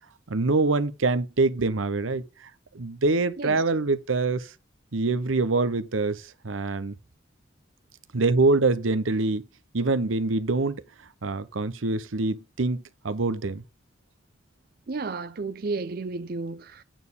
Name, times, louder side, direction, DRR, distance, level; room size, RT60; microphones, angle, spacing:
voice 1, 0.3-2.5 2.7-4.5 4.9-6.9 8.1-9.4 9.7-10.8 11.2-13.6, right 3 dB, 85° right, 0.8 m, -25 dB
voice 2, 14.9-16.8, right 3 dB, 50° right, 0.5 m, -32 dB
9.0 x 4.2 x 7.0 m
head